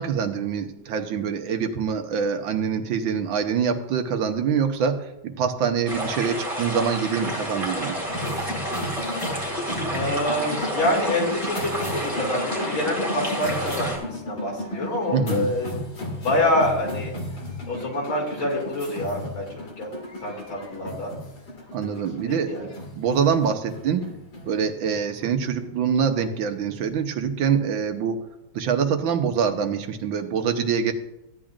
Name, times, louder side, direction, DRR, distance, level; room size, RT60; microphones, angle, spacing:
voice 1, 0.0-8.0 15.1-15.5 21.7-22.5 23.0-24.0 24.5-28.2 28.5-30.9, right 7 dB, 75° right, 6 dB, 1.7 m, -25 dB
sound 1, 5.9-14.0, equal, 15° right, 3.9 m, -30 dB
sound 2, 8.1-26.7, left 1 dB, 55° left, 2.7 m, -35 dB
voice 2, 9.9-17.1 17.7-19.9 20.2-21.1 21.8-22.7, left 1 dB, 90° left, -2 dB, 3.7 m, -27 dB
15.5 x 10.5 x 2.5 m, 0.88 s
omnidirectional pair, 2.2 m